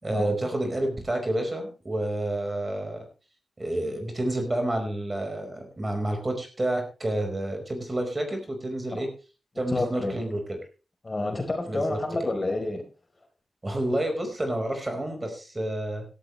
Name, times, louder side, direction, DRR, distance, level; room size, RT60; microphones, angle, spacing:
voice 1, 0.0-3.0 3.6-9.1 9.6-10.6 11.7-12.0 13.6-16.1, right 1 dB, 30° right, 4 dB, 5.1 m, -29 dB
voice 2, 9.7-10.2 11.0-12.8, left 2 dB, 35° left, 3 dB, 4.1 m, -29 dB
17.0 x 13.0 x 3.3 m, 0.34 s
cardioid pair, 70°, 0 cm